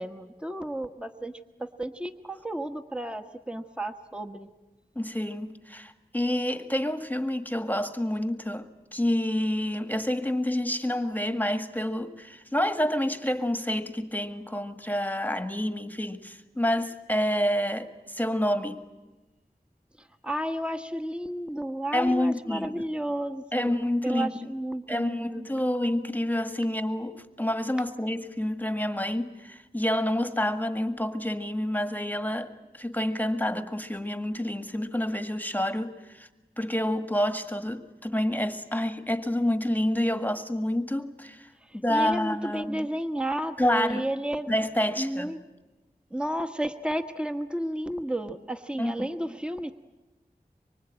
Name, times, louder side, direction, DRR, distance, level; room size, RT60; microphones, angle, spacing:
voice 1, 0.0-1.3 1.6-4.5 20.0-25.5 41.6-44.5 44.9-45.4 46.1-49.7, right 1 dB, 5° right, 1.3 m, -32 dB
voice 2, 4.9-18.8 21.9-22.9 23.5-24.3 24.9-36.3 36.6-41.5 41.8-42.9 43.6-44.0 44.5-45.4 48.8-49.1, left 1 dB, 10° left, 1.6 m, -28 dB
25.0 x 24.5 x 8.9 m
wide cardioid pair, 45°, 16 cm